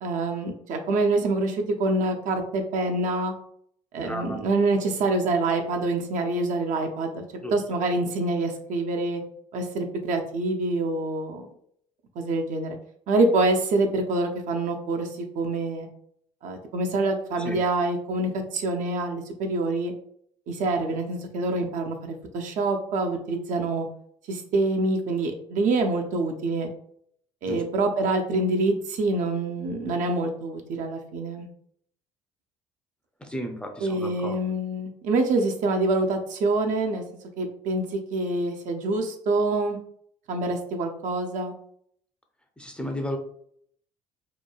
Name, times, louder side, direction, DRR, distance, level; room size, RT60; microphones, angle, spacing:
voice 1, 0.0-3.3 3.9-7.2 7.5-9.2 9.5-11.5 12.2-12.8 13.1-15.9 16.4-19.9 20.5-23.9 24.3-26.7 27.4-31.5 33.8-37.0 37.4-37.9 38.1-39.8 40.3-41.5, right 2 dB, 55° right, 4 dB, 0.5 m, -26 dB
voice 2, 4.0-4.4 7.4-7.6 17.4-17.6 27.5-27.6 33.2-34.4 42.6-43.2, equal, 5° left, 4 dB, 0.5 m, -33 dB
3.0 x 2.2 x 2.2 m, 0.66 s
hypercardioid pair, 55°, 16 cm